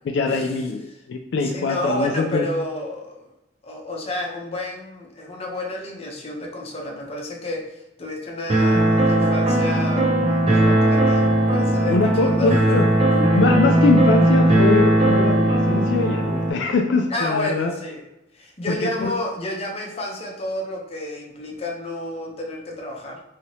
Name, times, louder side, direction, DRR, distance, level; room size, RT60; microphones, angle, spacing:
voice 1, 0.0-2.4 11.9-12.9 13.3-17.7 18.7-19.1, left 3 dB, 70° left, 4 dB, 0.3 m, -22 dB
voice 2, 1.4-3.3 3.6-12.8 13.1-13.4 17.1-18.0 18.3-23.2, left 1 dB, 35° left, -1 dB, 0.6 m, -30 dB
dark piano-loop in a-minor, 8.5-16.5, right 1 dB, 35° right, 0.5 m, -18 dB
2.8 x 2.7 x 2.9 m, 0.92 s
head